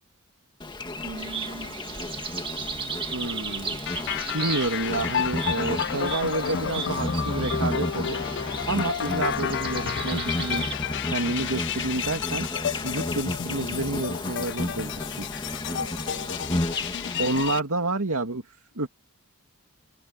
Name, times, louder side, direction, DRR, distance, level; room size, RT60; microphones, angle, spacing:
Insect, 0.6-17.6, left 1 dB, 20° left, 2.0 m, -33 dB
voice 1, 1.0-2.2 15.7-16.8, right 2 dB, 50° right, 2.6 m, -43 dB
sound 1, 1.2-10.7, right 5 dB, 25° right, 2.0 m, -36 dB
voice 2, 3.1-3.8 4.3-8.2 8.7-10.7 11.1-12.5 12.8-15.3 17.2-18.9, right 2 dB, 65° right, 2.4 m, -29 dB
sound 2, 3.9-17.6, left 9 dB, 55° left, 0.4 m, -32 dB
head